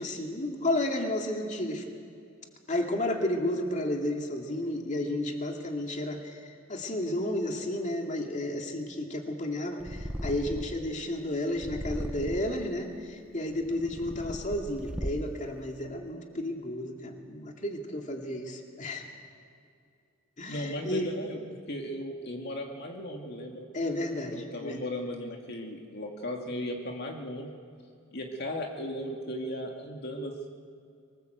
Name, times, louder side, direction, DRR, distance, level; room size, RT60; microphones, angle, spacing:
voice 1, 0.0-1.8 2.7-19.1 20.4-21.1 23.7-24.8, left 1 dB, 35° left, 2 dB, 2.3 m, -32 dB
Purr, 9.8-10.9 11.6-12.7 13.4-15.5, equal, 5° right, 0.7 m, -37 dB
voice 2, 20.5-21.4 21.7-23.7 24.3-27.6 28.1-30.5, left 1 dB, 50° left, 1 dB, 2.2 m, -36 dB
24.5 x 19.5 x 8.0 m, 2.4 s
head